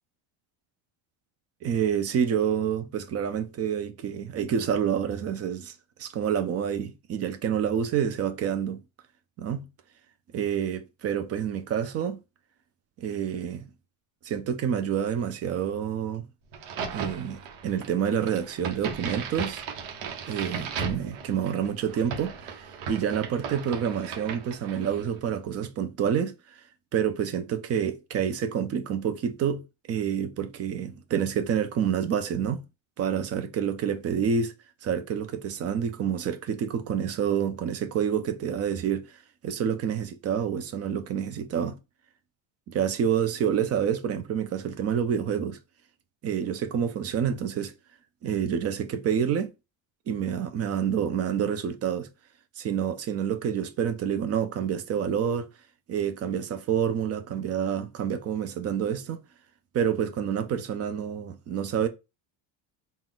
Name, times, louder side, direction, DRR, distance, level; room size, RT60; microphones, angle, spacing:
voice 1, 1.6-5.7 6.0-8.8 9.4-9.7 10.3-12.2 13.0-13.7 14.2-16.3 16.9-19.6 20.3-26.3 26.9-29.6 29.9-32.6 33.0-34.5 34.8-39.0 39.4-41.8 42.7-45.6 46.2-47.7 48.2-49.5 50.1-52.1 52.6-55.5 55.9-59.2 59.7-61.9, right 8 dB, 35° right, 0.5 m, -28 dB
Crack, 16.5-25.1, right 5 dB, 75° right, 1.2 m, -36 dB
3.9 x 2.5 x 3.8 m
cardioid pair, 165°, 46 cm